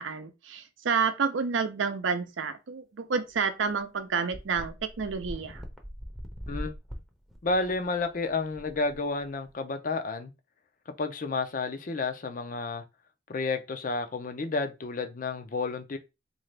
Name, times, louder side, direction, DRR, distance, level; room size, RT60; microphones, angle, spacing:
voice 1, 0.0-5.6, right 5 dB, 90° right, 0.6 m, -29 dB
sound 1, 3.3-3.4 3.7-3.8 4.3-9.5, equal, ahead, 0.6 m, -42 dB
voice 2, 7.4-10.3 11.0-12.8 13.3-16.0, left 3 dB, 45° left, 0.5 m, -31 dB
3.7 x 2.6 x 3.2 m
head